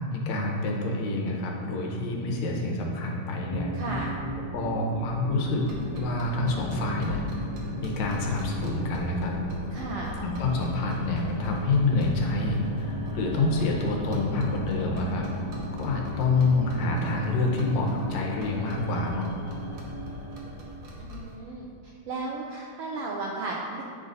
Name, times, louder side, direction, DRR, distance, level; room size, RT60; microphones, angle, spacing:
voice 1, 0.1-3.7 4.0-4.1 4.5-5.7 6.0-7.2 7.8-9.4 10.2-15.3 15.7-19.3, left 2 dB, 80° left, 0 dB, 2.1 m, -27 dB
sound 1, 3.5-20.9, left 1 dB, 45° left, 0.7 m, -37 dB
voice 2, 3.7-4.2 9.7-10.1 21.0-23.8, right 3 dB, 80° right, -2 dB, 1.3 m, -35 dB
sound 2, 5.6-21.4, left 1 dB, 60° right, 1.2 m, -42 dB
9.7 x 3.9 x 3.8 m, 2.5 s
omnidirectional pair, 3.3 m